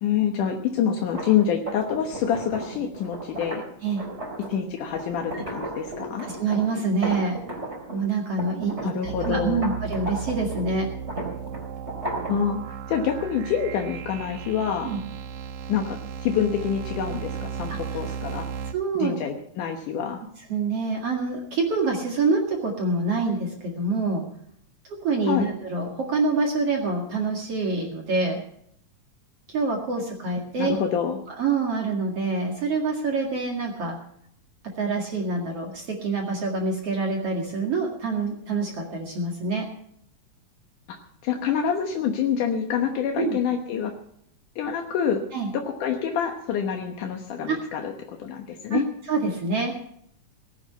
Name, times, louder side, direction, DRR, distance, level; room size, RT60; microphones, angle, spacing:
voice 1, 0.0-3.6 4.5-6.3 8.8-9.7 12.3-14.9 15.7-18.5 19.0-20.2 25.3-25.5 30.6-31.2 40.9-41.0 41.2-43.9 44.6-45.2 45.5-48.8, left 8 dB, 75° left, 3 dB, 2.7 m, -26 dB
sound 1, 1.0-8.0 8.4-12.5, right 1 dB, 20° right, 3.7 m, -35 dB
voice 2, 6.2-7.4 7.9-10.9 14.8-15.0 17.7-17.8 18.7-19.1 20.5-24.3 24.9-28.4 29.5-30.7 31.4-34.0 34.8-39.7 43.2-43.4 45.3-45.5 47.5-47.6 48.7-49.7, right 3 dB, 50° right, 0 dB, 2.8 m, -26 dB
sound 2, 9.0-18.7, right 7 dB, 75° right, 2.3 m, -35 dB
18.0 x 10.5 x 5.7 m, 0.69 s
omnidirectional pair, 3.7 m